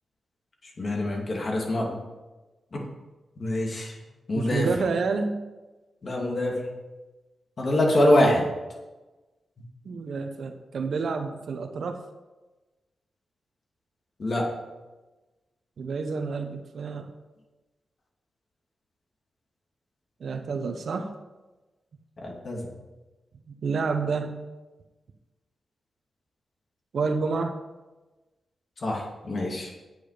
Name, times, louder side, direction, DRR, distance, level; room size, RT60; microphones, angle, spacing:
voice 1, 0.6-2.0 2.7-2.8 3.4-4.0 4.3-4.7 6.0-6.7 7.6-8.5 14.2-14.5 22.2-22.7 28.8-29.7, left 1 dB, 45° left, -1 dB, 2.6 m, -25 dB
voice 2, 4.3-5.4 9.8-12.0 15.8-17.1 20.2-21.1 23.5-24.5 26.9-27.5, right 4 dB, 65° right, 6 dB, 1.0 m, -29 dB
9.9 x 8.9 x 5.0 m, 1.1 s
wide cardioid pair, 100°, 0 cm